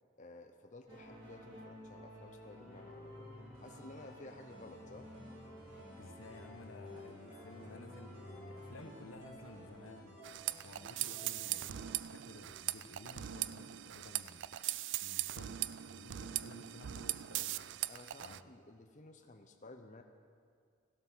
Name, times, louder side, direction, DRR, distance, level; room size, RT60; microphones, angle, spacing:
voice 1, 0.2-3.3 3.6-5.1 17.9-20.0, left 2 dB, 35° left, 4 dB, 0.7 m, -54 dB
sound 1, 0.9-9.8, left 1 dB, 25° right, 3.4 m, -52 dB
sound 2, 3.5-12.0, right 1 dB, 90° right, 3.7 m, -57 dB
voice 2, 6.0-10.3 10.6-14.4 15.0-17.6 18.2-18.4, left 2 dB, 90° left, 6 dB, 1.2 m, -54 dB
sound 3, 10.2-18.4, right 14 dB, 60° right, 0.3 m, -40 dB
15.5 x 12.0 x 6.2 m, 2.1 s
head